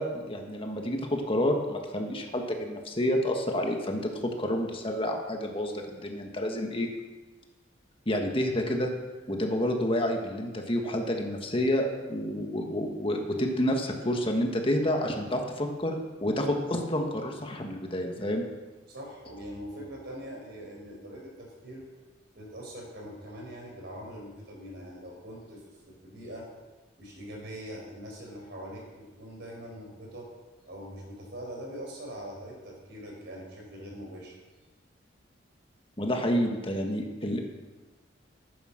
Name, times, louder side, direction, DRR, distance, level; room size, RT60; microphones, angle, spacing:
voice 1, 0.0-6.9 8.0-8.9 9.3-18.4 36.0-37.4, left 1 dB, 30° left, 3 dB, 1.5 m, -29 dB
voice 2, 18.9-21.8 22.3-26.5 27.0-30.3 30.7-34.4, equal, 60° right, -1 dB, 4.7 m, -42 dB
14.0 x 9.7 x 6.5 m, 1.2 s
head